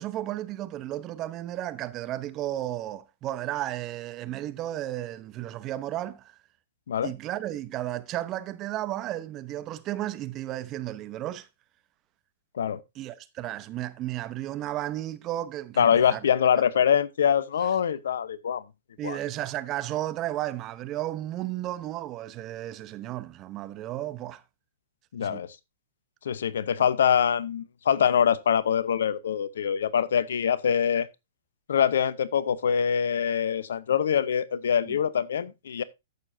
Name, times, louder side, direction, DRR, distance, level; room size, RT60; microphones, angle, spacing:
voice 1, 0.0-6.3 7.0-11.5 13.0-16.2 19.0-24.4 25.2-25.4 34.9-35.0, right 13 dB, 30° right, 0.8 m, -33 dB
voice 2, 15.8-18.6 19.0-19.2 25.1-25.6 26.2-31.1 31.7-35.8, left 8 dB, 65° left, 0.8 m, -24 dB
14.5 x 6.7 x 2.7 m
hypercardioid pair, 115°, 0 cm